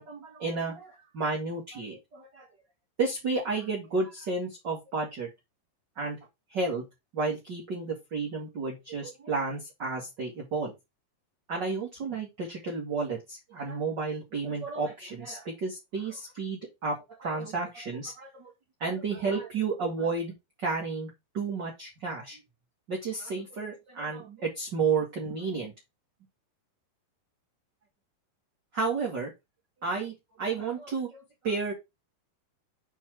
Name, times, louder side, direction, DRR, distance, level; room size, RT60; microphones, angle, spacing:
voice 1, 0.0-2.5 3.0-5.3 5.9-6.2 6.5-6.8 7.1-10.7 11.5-18.5 18.8-20.3 20.6-22.4 22.9-25.7 28.7-29.3 29.8-31.7, right 4 dB, 45° right, -2 dB, 1.4 m, -32 dB
8.5 x 3.6 x 4.6 m, 0.22 s
omnidirectional pair, 4.9 m